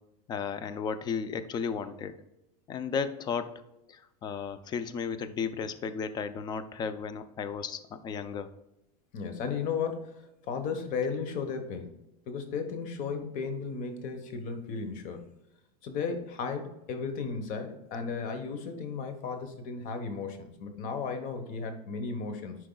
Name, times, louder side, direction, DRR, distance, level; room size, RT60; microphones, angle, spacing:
voice 1, 0.3-2.2 2.7-3.6 3.9-8.5, left 6 dB, 20° left, 12 dB, 0.4 m, -34 dB
voice 2, 9.1-12.0 12.3-15.2 15.8-22.6, left 5 dB, 45° left, 7 dB, 1.1 m, -35 dB
10.0 x 4.6 x 2.3 m, 0.89 s
supercardioid pair, 145°, 20 cm